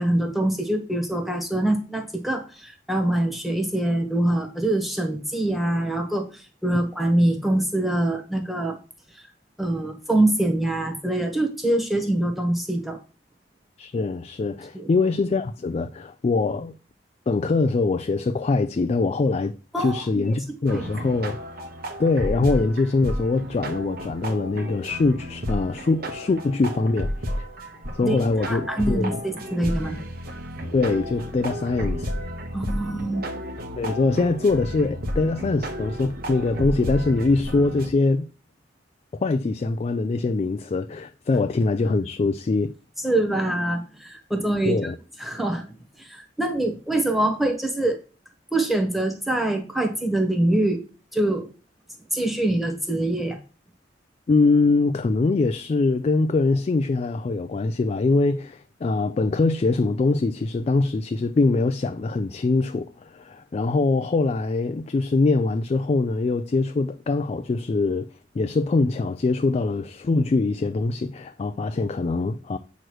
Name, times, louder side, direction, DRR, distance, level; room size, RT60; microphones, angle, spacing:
voice 1, 0.0-8.8 9.6-13.0 14.7-14.9 19.7-20.2 20.7-20.9 28.0-28.2 28.4-30.0 32.5-33.2 43.0-44.9 45.2-45.6 46.0-48.0 48.5-50.8 51.1-51.5 52.1-53.4, right 1 dB, ahead, 1.2 m, -24 dB
voice 2, 13.8-16.7 17.3-21.4 22.0-27.5 27.9-29.2 30.7-32.1 33.8-38.3 39.2-42.7 44.6-45.0 54.3-68.1 68.3-72.6, left 3 dB, 35° left, 0.3 m, -23 dB
sound 1, 20.7-37.9, equal, 55° right, 1.0 m, -32 dB
7.8 x 3.1 x 6.1 m
head